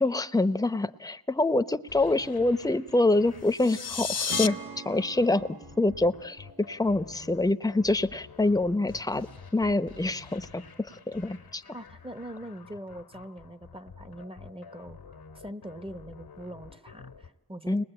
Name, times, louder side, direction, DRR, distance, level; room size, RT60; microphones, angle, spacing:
voice 1, 0.0-4.6 4.8-5.5 5.8-9.3 9.5-11.6 17.7-17.8, left 2 dB, 10° left, 11 dB, 0.9 m, -26 dB
sound 1, 1.9-17.3, left 5 dB, 85° left, 1.8 m, -50 dB
sound 2, 3.4-4.5, left 6 dB, 40° left, 0.9 m, -30 dB
Acoustic guitar / Strum, 4.3-7.7, right 5 dB, 65° right, 1.8 m, -44 dB
voice 2, 11.7-17.8, right 1 dB, 15° right, 11 dB, 1.0 m, -42 dB
29.5 x 20.5 x 9.0 m, 0.93 s
cardioid pair, 40°, 37 cm